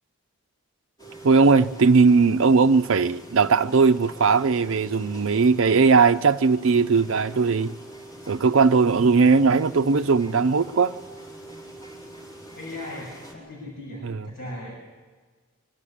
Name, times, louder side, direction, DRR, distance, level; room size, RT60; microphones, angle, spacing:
sound 1, 1.0-13.3, right 1 dB, 20° left, 4.3 m, -44 dB
voice 1, 1.2-7.8 8.3-10.9 14.0-14.3, right 4 dB, 65° right, 0.5 m, -19 dB
voice 2, 12.5-14.7, left 1 dB, 45° left, 6.7 m, -37 dB
24.0 x 12.5 x 10.0 m
head